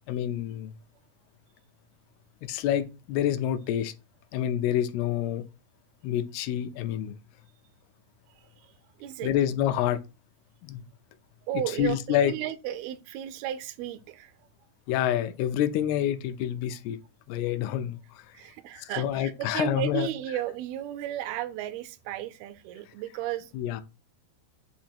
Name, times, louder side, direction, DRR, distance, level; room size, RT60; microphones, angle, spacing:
voice 1, 0.1-0.7 2.4-3.9 4.3-5.5 6.0-7.2 9.2-10.0 10.6-10.9 11.7-12.3 14.9-17.0 17.3-18.3 18.8-20.1 23.5-23.8, left 11 dB, 90° left, 2.6 m, -27 dB
voice 2, 9.0-9.3 11.5-14.3 18.3-23.5, right 12 dB, 85° right, 2.4 m, -34 dB
8.5 x 2.9 x 4.3 m
omnidirectional pair, 4.4 m